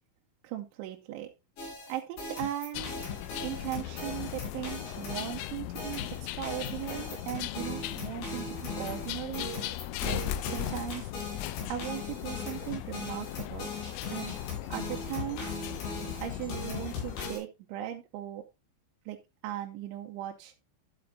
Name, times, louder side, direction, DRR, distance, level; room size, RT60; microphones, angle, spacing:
voice 1, 0.4-1.3 1.9-2.9 3.4-9.5 10.0-11.1 11.7-13.7 14.1-14.3 14.7-15.5 16.2-18.4 19.1-19.2 19.4-20.5, right 13 dB, 85° right, 3 dB, 3.2 m, -38 dB
sound 1, 1.6-17.4, left 3 dB, 55° left, 5.0 m, -39 dB
sound 2, 2.7-17.3, left 13 dB, 85° left, 2.9 m, -38 dB
11.5 x 7.8 x 2.6 m, 0.24 s
omnidirectional pair, 5.3 m